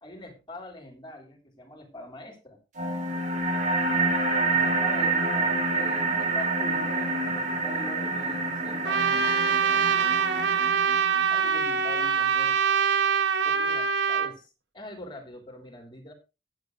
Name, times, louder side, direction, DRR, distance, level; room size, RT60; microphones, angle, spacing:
voice 1, 0.0-2.6 4.5-9.3 9.8-10.2 11.3-12.6 13.4-16.1, left 1 dB, 30° left, 3 dB, 3.7 m, -43 dB
sound 1, 2.8-11.8, right 3 dB, 45° right, 2.9 m, -27 dB
Trumpet, 8.8-14.3, right 7 dB, 85° right, 1.1 m, -24 dB
14.5 x 9.4 x 3.3 m, 0.29 s
head